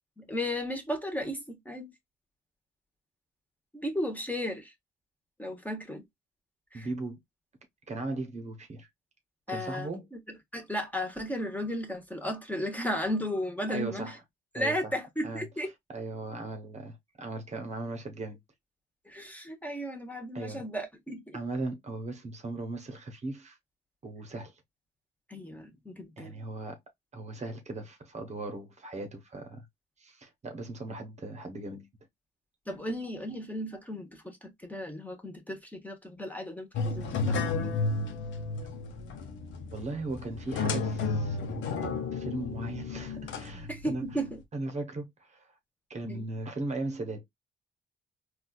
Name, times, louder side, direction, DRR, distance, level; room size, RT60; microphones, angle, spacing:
voice 1, 0.2-1.9 3.7-4.7 5.4-6.0 6.7-6.9 9.5-9.9 10.5-14.1 14.5-15.7 19.1-21.4 25.3-26.3 32.7-37.8 43.7-44.4 46.0-46.3, equal, 10° left, 1.0 m, -35 dB
voice 2, 6.7-7.2 7.9-8.9 9.5-10.1 13.7-14.2 14.5-14.9 15.2-15.5 15.9-18.4 20.3-20.6 21.3-23.6 24.0-24.6 26.2-26.8 27.1-29.6 30.0-31.9 37.9-38.0 39.7-44.0 44.5-45.5 45.9-47.2, right 2 dB, 35° right, 0.9 m, -38 dB
sound 1, 36.7-44.3, left 4 dB, 75° left, 0.7 m, -33 dB
4.0 x 2.4 x 2.3 m
cardioid pair, 90°, 20 cm